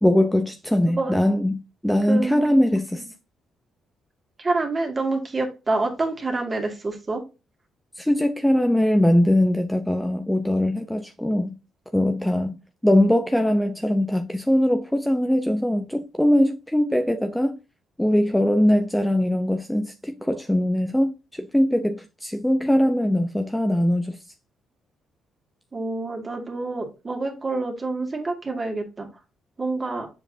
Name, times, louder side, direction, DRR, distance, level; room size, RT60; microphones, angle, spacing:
voice 1, 0.0-3.1 8.0-11.6 11.9-17.5 18.0-24.2, left 1 dB, 5° left, 0.7 m, -21 dB
voice 2, 2.1-2.6 4.4-7.2 25.7-29.1 29.6-30.1, right 3 dB, 30° right, 2.1 m, -27 dB
7.3 x 4.8 x 2.7 m
cardioid pair, 90°, 0 cm